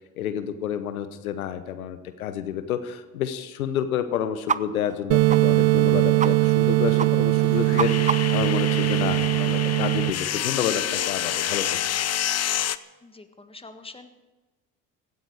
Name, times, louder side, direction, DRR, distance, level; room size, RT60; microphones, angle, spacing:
voice 1, 0.2-11.8, left 9 dB, 90° left, 11 dB, 0.9 m, -29 dB
sound 1, 4.5-4.6 4.9-5.0 5.3-5.4 5.8-5.9 6.2-6.3 6.6-6.7 7.0-7.1 7.4-8.4, right 6 dB, 20° right, 0.5 m, -27 dB
sound 2, 5.1-10.1, right 20 dB, 65° right, 0.9 m, -21 dB
sound 3, 7.0-12.8, left 11 dB, 40° left, 0.7 m, -28 dB
voice 2, 13.0-14.1, left 3 dB, 15° left, 8 dB, 1.6 m, -45 dB
17.0 x 13.0 x 4.8 m, 1.2 s
hypercardioid pair, 60°, 41 cm